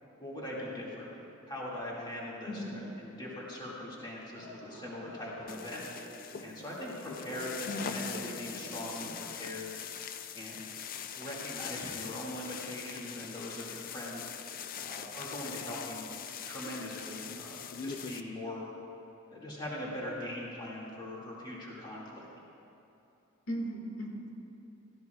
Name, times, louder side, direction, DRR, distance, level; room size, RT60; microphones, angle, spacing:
voice 1, 0.2-5.8 6.4-9.8 10.3-10.7 11.1-14.2 14.8-16.1 16.5-18.7 19.3-22.3, left 1 dB, 25° left, -5 dB, 2.0 m, -41 dB
voice 2, 2.5-2.9 7.7-8.0 23.5-24.3, equal, 90° left, 0 dB, 1.8 m, -37 dB
sound 1, 4.4-9.4, left 1 dB, 75° left, 1.6 m, -47 dB
sound 2, 5.5-18.2, left 8 dB, 45° left, 0.4 m, -42 dB
16.5 x 13.5 x 2.3 m, 2.9 s
head